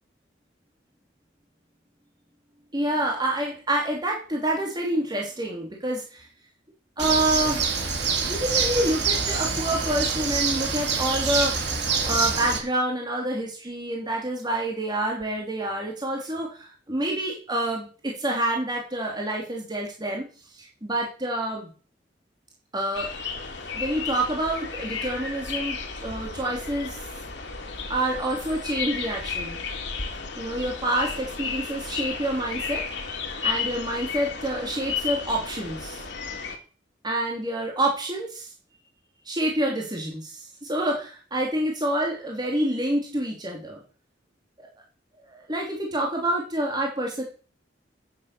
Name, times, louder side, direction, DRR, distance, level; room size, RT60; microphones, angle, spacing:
voice 1, 2.7-6.3 7.0-7.7 8.2-11.5 12.0-20.2 20.6-21.7 22.7-23.1 23.7-26.9 27.9-29.6 30.4-32.8 33.4-36.0 37.0-38.5 39.2-43.8 44.6-44.7 45.3-47.2, right 1 dB, 25° right, -1 dB, 3.4 m, -27 dB
Bird, 7.0-12.6, right 5 dB, 65° right, 3.1 m, -26 dB
sound 1, 22.9-36.6, left 5 dB, 70° left, 2.7 m, -33 dB
10.0 x 9.9 x 7.0 m, 0.38 s
head